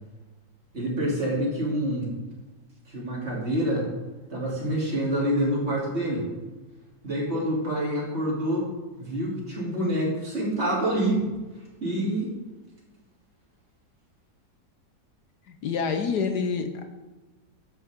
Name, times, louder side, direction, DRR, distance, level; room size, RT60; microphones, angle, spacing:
voice 1, 0.7-2.1 2.9-3.8 4.3-6.3 7.0-8.7 9.0-11.3 11.8-12.3, right 1 dB, 35° right, -5 dB, 3.3 m, -27 dB
voice 2, 15.5-16.8, left 5 dB, 70° left, 6 dB, 1.4 m, -27 dB
13.0 x 9.5 x 3.7 m, 1.2 s
omnidirectional pair, 1.9 m